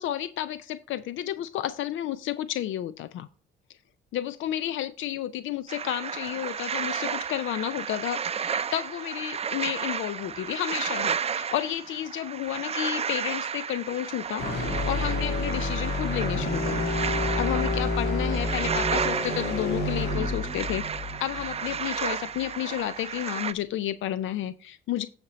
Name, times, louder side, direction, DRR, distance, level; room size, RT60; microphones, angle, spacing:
voice 1, 0.0-3.3 4.1-14.5 14.8-16.9 17.4-20.8 21.2-25.1, left 12 dB, 80° left, 14 dB, 0.5 m, -31 dB
sound 1, 5.7-23.5, right 7 dB, 30° right, 0.4 m, -32 dB
sound 2, 14.4-22.5, left 2 dB, 60° left, 2.3 m, -29 dB
9.6 x 4.3 x 5.0 m, 0.41 s
cardioid pair, 90°, 20 cm